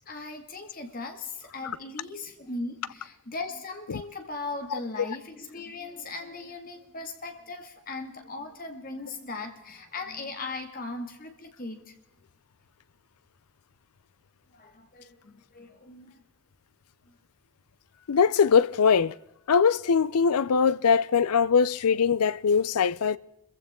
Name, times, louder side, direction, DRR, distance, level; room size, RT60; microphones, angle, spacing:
voice 1, 0.1-11.9 14.5-16.2, left 3 dB, 40° left, 2.2 m, -38 dB
voice 2, 18.1-19.1 19.5-23.2, left 6 dB, 85° left, 0.5 m, -22 dB
25.5 x 15.0 x 3.7 m
head